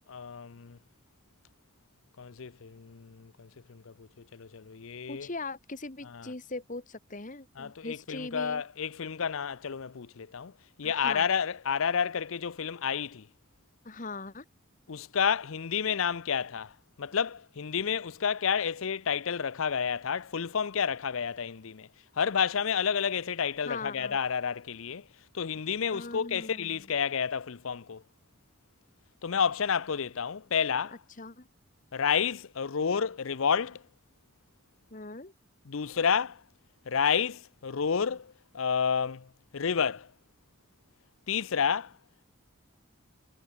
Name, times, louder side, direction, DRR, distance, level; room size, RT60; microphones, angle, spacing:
voice 1, 0.1-0.8 2.2-5.3 6.1-6.3 7.6-10.5 10.8-13.3 14.9-16.7 17.0-21.9 22.2-25.1 25.3-28.0 29.2-31.0 31.9-33.8 35.7-36.4 36.9-39.3 39.5-40.1 41.3-41.9, left 6 dB, 75° left, 0.6 m, -30 dB
voice 2, 5.1-8.6 10.8-11.2 13.8-14.4 23.6-24.2 25.9-26.8 31.2-31.5 34.9-35.3, left 3 dB, 35° left, 1.4 m, -40 dB
head